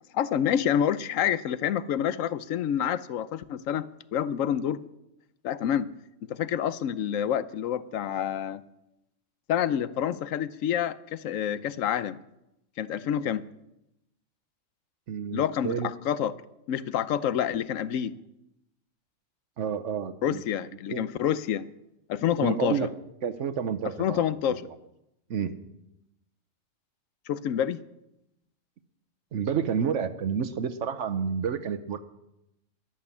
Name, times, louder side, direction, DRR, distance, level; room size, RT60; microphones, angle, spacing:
voice 1, 0.1-4.8 5.4-5.9 6.3-8.6 9.5-12.2 12.8-13.5 15.3-16.3 16.7-18.1 20.2-21.7 22.1-22.8 24.0-24.7 27.3-27.8, left 9 dB, 90° left, 1.1 m, -28 dB
voice 2, 15.1-15.9 19.6-20.4 20.9-21.1 22.4-22.9 23.2-24.6 25.3-25.6 29.3-32.0, right 7 dB, 70° right, 1.1 m, -30 dB
13.5 x 11.0 x 7.1 m
omnidirectional pair, 1.3 m